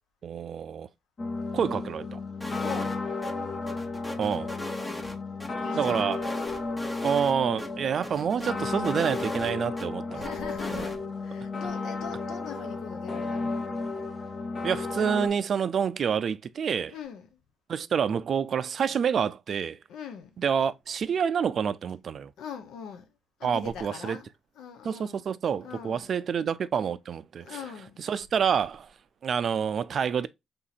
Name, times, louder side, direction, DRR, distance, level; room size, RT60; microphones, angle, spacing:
voice 1, 0.2-0.9 1.5-2.2 4.2-4.5 5.7-6.2 7.0-10.3 10.7-10.9 14.6-16.9 17.7-19.8 20.4-22.3 23.4-24.2 24.8-27.6 28.0-28.9 29.2-30.3, right 7 dB, 55° right, 0.4 m, -28 dB
sound 1, 1.2-15.3, left 3 dB, 40° left, 0.8 m, -33 dB
sound 2, 2.4-3.0 3.2-3.3 3.7-5.5 5.8-7.3 7.6-7.7 8.0-9.9 10.2-11.0, left 1 dB, 20° left, 1.0 m, -38 dB
voice 2, 2.6-3.0 5.6-6.1 10.1-13.7 16.9-17.3 19.9-20.4 22.4-23.1 23.4-24.3 24.6-25.2 25.6-26.1 27.4-28.1, left 7 dB, 80° left, 0.8 m, -41 dB
3.6 x 2.8 x 4.0 m
cardioid pair, 85°, 0 cm